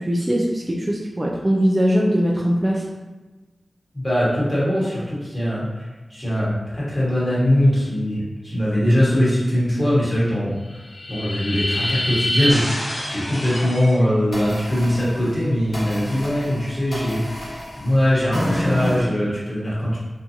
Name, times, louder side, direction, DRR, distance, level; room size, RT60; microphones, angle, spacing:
voice 1, 0.0-2.8, equal, 25° right, -3 dB, 0.3 m, -20 dB
voice 2, 3.9-12.6 13.0-20.0, left 1 dB, 30° left, -8 dB, 1.1 m, -21 dB
sound 1, 10.7-13.9 14.3-19.0, equal, 80° left, 0.7 m, -28 dB
2.6 x 2.2 x 2.8 m, 1.2 s
cardioid pair, 50°, 0 cm